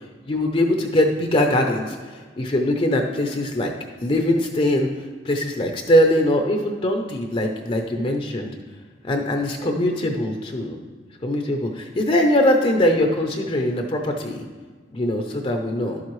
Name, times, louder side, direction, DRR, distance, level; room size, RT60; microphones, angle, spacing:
voice 1, 0.3-3.7 4.0-4.9 5.3-8.5 9.0-10.8 11.2-14.4 14.9-16.0, left 1 dB, 30° left, 3 dB, 0.6 m, -21 dB
11.0 x 7.3 x 3.1 m, 1.4 s
head